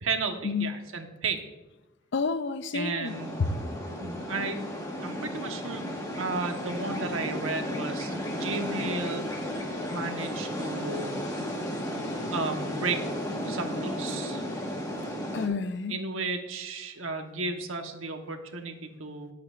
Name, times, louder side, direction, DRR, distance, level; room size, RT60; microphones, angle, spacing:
voice 1, 0.0-1.4 2.7-3.3 4.0-4.6 5.0-9.3 9.9-11.2 12.3-13.1 13.5-14.4 15.9-19.3, right 3 dB, 85° right, 5 dB, 1.2 m, -33 dB
voice 2, 2.1-3.5 15.3-16.0, left 4 dB, 60° left, 12 dB, 0.5 m, -30 dB
sound 1, 3.0-15.5, equal, 20° left, 1.5 m, -34 dB
20.0 x 7.7 x 2.5 m, 1.0 s
head